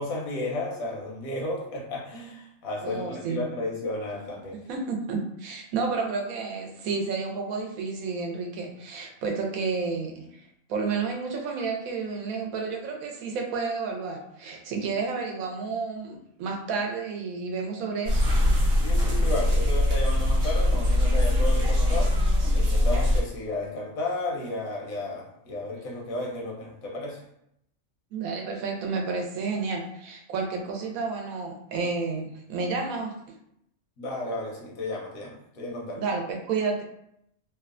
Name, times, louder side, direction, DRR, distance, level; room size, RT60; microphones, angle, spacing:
voice 1, 0.0-4.7 18.8-27.2 34.0-36.0, left 2 dB, 85° left, -2 dB, 1.2 m, -33 dB
voice 2, 2.8-3.4 4.7-10.3 10.7-18.3 28.1-33.1 36.0-36.8, right 4 dB, 85° right, 1 dB, 1.0 m, -31 dB
sound 1, 18.1-23.2, left 1 dB, 55° right, 0.8 m, -22 dB
3.0 x 2.1 x 2.4 m, 0.75 s
omnidirectional pair, 1.4 m